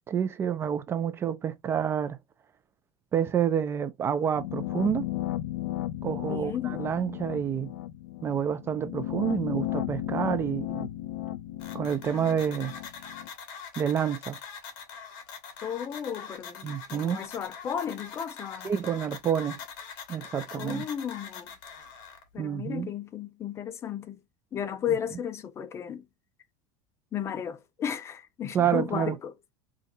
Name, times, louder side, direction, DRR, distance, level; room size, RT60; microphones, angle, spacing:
voice 1, 0.1-2.2 3.1-5.1 6.0-7.7 8.2-10.9 11.7-12.7 13.8-14.4 16.6-17.3 18.6-19.6 20.1-20.8 22.4-22.9 28.5-29.2, right 8 dB, 25° right, 0.3 m, -28 dB
sound 1, 4.3-13.3, left 14 dB, 90° left, 0.5 m, -34 dB
voice 2, 6.2-6.8 15.6-18.7 20.6-21.5 22.3-24.2 24.5-26.0 27.1-29.3, left 9 dB, 25° left, 0.5 m, -34 dB
sound 2, 11.6-22.2, left 6 dB, 60° left, 1.1 m, -43 dB
3.9 x 2.5 x 2.6 m
supercardioid pair, 130°, 10 cm